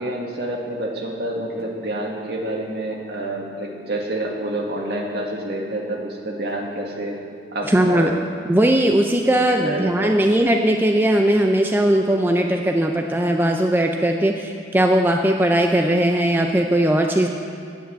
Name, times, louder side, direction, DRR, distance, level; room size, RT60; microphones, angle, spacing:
voice 1, 0.0-7.2 7.5-8.2 9.6-10.1, right 1 dB, 60° right, 0 dB, 1.7 m, -28 dB
voice 2, 7.7-8.1 8.5-17.3, right 1 dB, 10° right, 3 dB, 0.4 m, -19 dB
9.3 x 9.2 x 7.6 m, 2.5 s
head